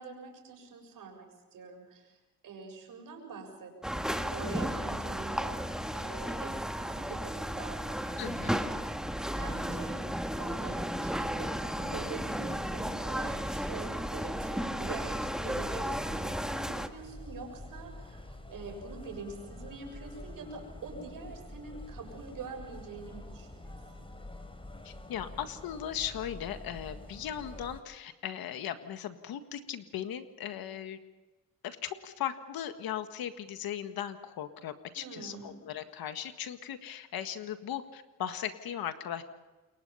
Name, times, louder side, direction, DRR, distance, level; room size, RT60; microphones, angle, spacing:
voice 1, 0.0-2.2 2.4-5.6 5.9-10.0 10.4-24.1 35.0-35.5, right 4 dB, 70° right, 3 dB, 7.0 m, -45 dB
sound 1, 3.8-16.9, equal, ahead, 1.6 m, -34 dB
voice 2, 8.2-8.7 24.8-31.0 31.6-39.2, left 10 dB, 80° left, 9 dB, 1.7 m, -38 dB
sound 2, 12.6-27.8, left 1 dB, 15° left, 3.2 m, -47 dB
28.0 x 22.5 x 5.7 m, 1.2 s
cardioid pair, 80°, 35 cm